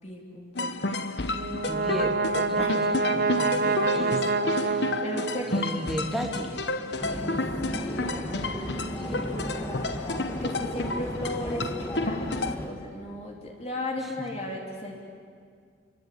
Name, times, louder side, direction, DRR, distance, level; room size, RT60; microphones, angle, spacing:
voice 1, 0.0-0.8 2.6-2.8 3.1-3.2 5.0-5.6 7.0-15.0, left 1 dB, 35° left, 0 dB, 3.3 m, -36 dB
sound 1, 0.6-12.6, left 2 dB, 65° left, 1.2 m, -31 dB
Brass instrument, 1.3-5.7, right 4 dB, 50° right, 1.0 m, -27 dB
voice 2, 1.6-4.9 5.5-6.6 8.7-9.7 14.0-14.1, equal, ahead, 0 dB, 2.5 m, -36 dB
sound 2, 7.0-12.7, equal, 15° left, 2.0 m, -35 dB
28.0 x 23.5 x 8.6 m, 2.1 s
head